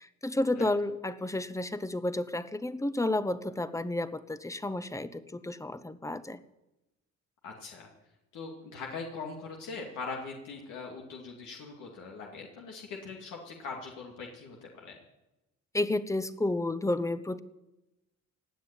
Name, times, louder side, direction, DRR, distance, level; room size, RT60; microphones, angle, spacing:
voice 1, 0.0-6.4 15.7-17.4, left 2 dB, 10° left, 13 dB, 0.9 m, -31 dB
voice 2, 7.4-7.9 8.3-15.0, left 4 dB, 85° left, -1 dB, 2.4 m, -41 dB
17.0 x 7.6 x 10.0 m, 0.98 s
cardioid pair, 90°, 30 cm